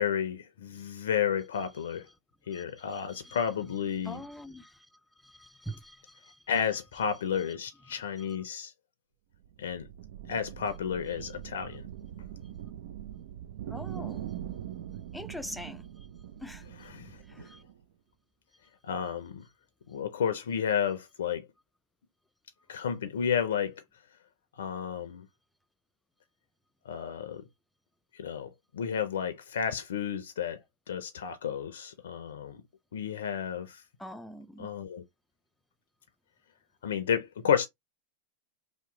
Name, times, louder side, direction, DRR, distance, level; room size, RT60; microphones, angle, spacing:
voice 1, 0.0-2.1 2.5-4.2 6.5-8.7 9.6-9.9 10.3-11.8 16.8-17.5 18.8-19.4 19.9-21.5 22.7-23.8 24.6-25.3 26.8-27.4 28.1-30.6 30.9-32.6 32.9-33.8 34.6-35.0 36.8-37.7, left 8 dB, 80° left, 0.5 m, -32 dB
voice 2, 4.0-4.8 5.2-6.4 13.7-14.3 15.1-15.8 16.4-16.6 17.3-17.6 34.0-34.7, equal, 5° left, 0.4 m, -43 dB
sound 1, 9.3-17.8, right 11 dB, 70° right, 0.3 m, -42 dB
2.9 x 2.0 x 3.7 m
hypercardioid pair, 110°, 0 cm